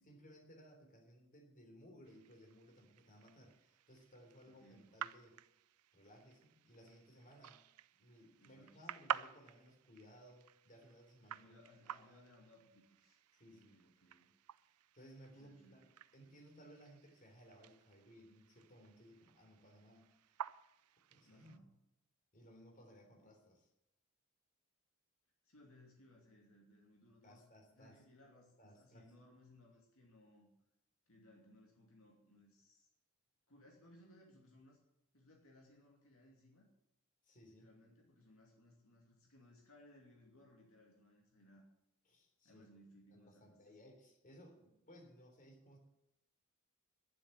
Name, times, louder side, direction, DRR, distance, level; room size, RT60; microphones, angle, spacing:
voice 1, 0.0-5.4 5.9-7.6 8.0-12.2 13.3-13.8 14.9-15.9 16.1-20.1 21.1-21.6 22.3-23.7 27.2-28.0 28.6-29.1 37.2-37.7 42.1-42.6 43.1-45.8, equal, 40° left, 1 dB, 3.6 m, -61 dB
sound 1, 2.0-21.6, right 9 dB, 85° right, 0.5 m, -51 dB
voice 2, 4.4-4.9 8.4-8.9 11.2-13.2 13.5-14.3 15.3-15.8 21.2-21.8 25.4-27.4 27.7-30.5 31.1-32.9 33.5-34.8 35.1-36.7 37.5-41.6 42.4-43.6, left 1 dB, 65° left, -1 dB, 2.8 m, -64 dB
11.5 x 7.7 x 9.7 m, 0.85 s
head